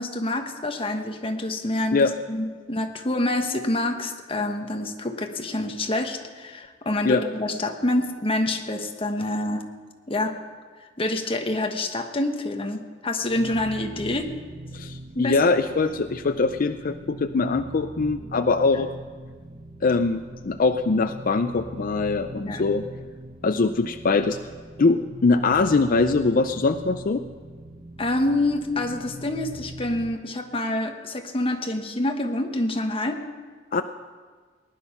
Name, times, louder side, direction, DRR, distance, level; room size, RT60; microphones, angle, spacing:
voice 1, 0.0-9.7 10.1-10.4 11.0-14.4 15.1-15.5 22.4-22.6 28.0-33.2, left 1 dB, 30° left, 5 dB, 1.2 m, -27 dB
sound 1, 13.2-30.2, right 1 dB, 30° right, 0.7 m, -41 dB
voice 2, 14.7-18.9 19.8-22.8 23.4-24.4 24.8-27.2 33.7-33.8, left 3 dB, 45° left, 8 dB, 0.5 m, -22 dB
19.0 x 11.0 x 5.8 m, 1.5 s
head